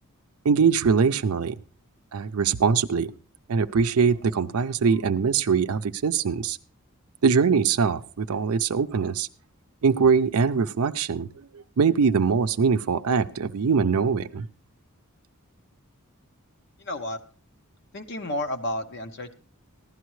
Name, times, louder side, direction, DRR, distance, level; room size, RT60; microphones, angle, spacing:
voice 1, 0.4-1.6 2.1-3.1 3.5-6.6 7.2-9.3 9.8-14.5, right 5 dB, 80° right, 10 dB, 0.5 m, -22 dB
voice 2, 16.8-17.2 17.9-19.3, left 1 dB, 55° left, 6 dB, 0.7 m, -31 dB
15.5 x 11.5 x 3.1 m, 0.38 s
head